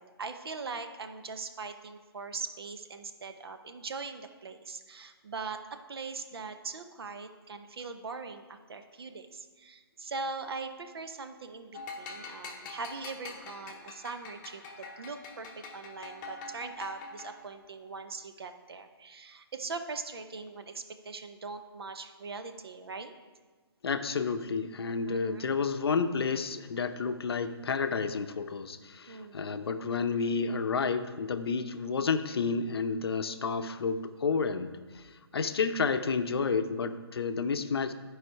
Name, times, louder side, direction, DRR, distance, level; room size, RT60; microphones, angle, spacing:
voice 1, 0.0-23.1 25.1-25.5 29.1-29.4, right 4 dB, 65° right, 8 dB, 0.8 m, -41 dB
sound 1, 11.7-17.5, left 3 dB, 20° left, 0.9 m, -45 dB
voice 2, 23.8-35.0 35.3-37.9, left 5 dB, 70° left, 9 dB, 0.7 m, -30 dB
11.5 x 5.0 x 4.6 m, 1.4 s
hypercardioid pair, 155°, 14 cm